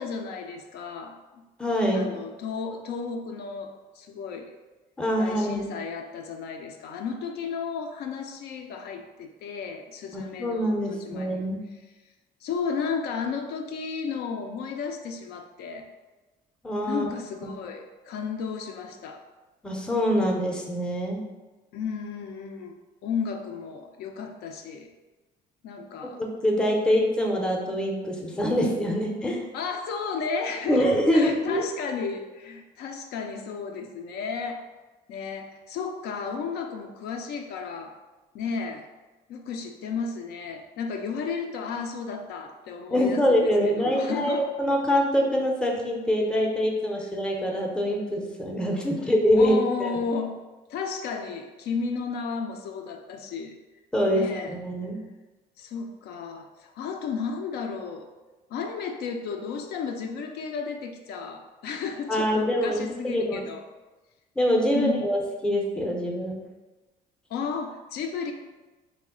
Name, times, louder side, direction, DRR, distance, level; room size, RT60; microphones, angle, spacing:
voice 1, 0.0-1.4 1.9-4.5 5.2-11.4 12.4-15.9 16.9-19.3 21.7-22.8 23.0-24.9 25.6-26.2 29.5-34.7 35.1-37.9 38.3-38.9 39.3-44.5 48.9-50.4 50.7-53.6 54.1-54.6 55.6-58.1 58.5-63.6 64.7-65.1 67.3-68.3, left 5 dB, 75° left, 4 dB, 0.4 m, -33 dB
voice 2, 1.6-2.1 5.0-5.7 10.1-11.6 16.6-17.1 19.6-21.2 26.4-29.4 30.7-31.6 42.9-50.0 53.9-55.0 62.1-63.4 64.4-66.4, equal, 5° left, 0 dB, 0.5 m, -24 dB
3.1 x 2.1 x 3.6 m, 1.2 s
cardioid pair, 110°, 17 cm